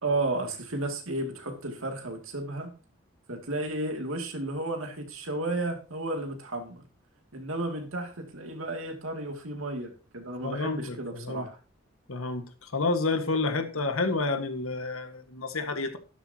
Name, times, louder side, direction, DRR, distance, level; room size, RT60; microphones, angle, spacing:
voice 1, 0.0-2.7 3.3-6.8 7.3-11.6, right 2 dB, 75° right, 2.5 m, -33 dB
voice 2, 10.4-11.5 12.1-16.0, left 3 dB, 80° left, 1.6 m, -29 dB
12.5 x 11.5 x 2.9 m
head